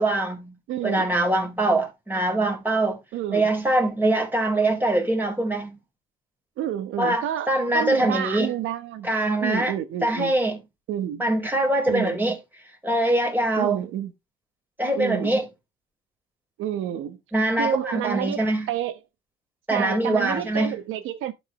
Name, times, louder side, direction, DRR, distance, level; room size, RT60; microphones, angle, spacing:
voice 1, 0.0-0.5 0.8-3.0 3.3-5.8 7.0-8.5 9.0-9.7 10.0-10.6 11.2-12.4 12.8-13.8 14.8-15.5 17.3-18.7 19.7-20.7, right 1 dB, 10° right, 4.4 m, -23 dB
voice 2, 0.7-1.1 3.1-3.5 6.6-9.1 9.4-10.3 10.9-11.2 11.9-12.2 13.6-14.1 14.9-15.3 16.6-17.2 17.5-19.0 19.7-21.3, right 11 dB, 90° right, 1.1 m, -29 dB
12.5 x 5.3 x 3.0 m
cardioid pair, 90°, 20 cm